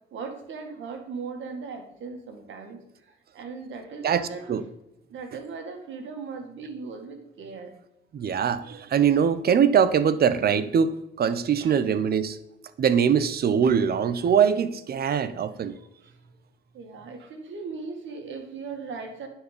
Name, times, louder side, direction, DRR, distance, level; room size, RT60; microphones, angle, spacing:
voice 1, 0.1-4.5 5.1-7.7 11.6-11.8 16.0-16.1 16.7-19.3, right 4 dB, 75° right, 2.0 m, -38 dB
voice 2, 4.0-4.6 8.1-12.4 12.8-15.8, right 7 dB, 50° right, 0.8 m, -22 dB
9.9 x 4.6 x 6.7 m
cardioid pair, 90°, 20 cm